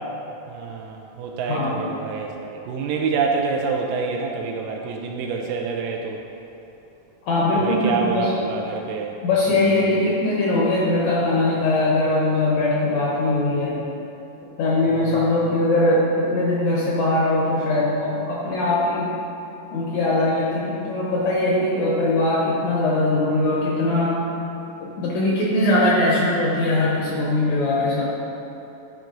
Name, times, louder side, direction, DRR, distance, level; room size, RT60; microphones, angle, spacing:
voice 1, 0.5-6.2 7.6-9.1, right 4 dB, 80° right, 1 dB, 2.1 m, -27 dB
voice 2, 1.5-1.9 7.3-8.4 9.2-13.8 14.6-19.1 19.7-24.2 24.8-28.0, left 2 dB, 70° left, -5 dB, 1.8 m, -21 dB
10.5 x 4.6 x 3.8 m, 2.9 s
omnidirectional pair, 4.1 m